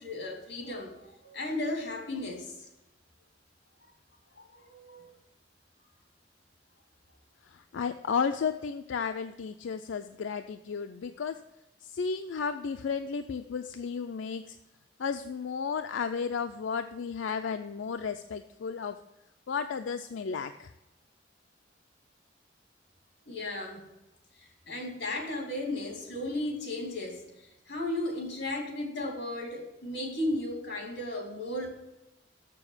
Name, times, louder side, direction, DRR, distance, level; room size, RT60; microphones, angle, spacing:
voice 1, 0.0-2.5 4.4-5.1 23.3-23.8 24.4-31.7, left 1 dB, 60° left, 2 dB, 2.6 m, -35 dB
voice 2, 7.7-11.3 11.9-14.6 15.0-19.0 19.5-20.7, left 6 dB, 85° left, 7 dB, 0.4 m, -33 dB
6.9 x 6.9 x 7.1 m, 0.94 s
head